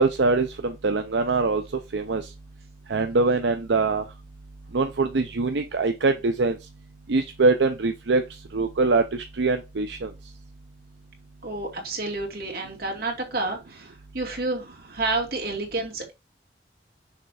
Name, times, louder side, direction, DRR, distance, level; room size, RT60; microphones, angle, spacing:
voice 1, 0.0-1.6 1.9-2.3 2.9-4.0 4.7-6.6 7.1-8.2 8.5-10.1, right 3 dB, 80° right, 0.6 m, -23 dB
voice 2, 11.4-16.1, right 2 dB, 60° right, 2.6 m, -30 dB
6.6 x 3.4 x 4.8 m
head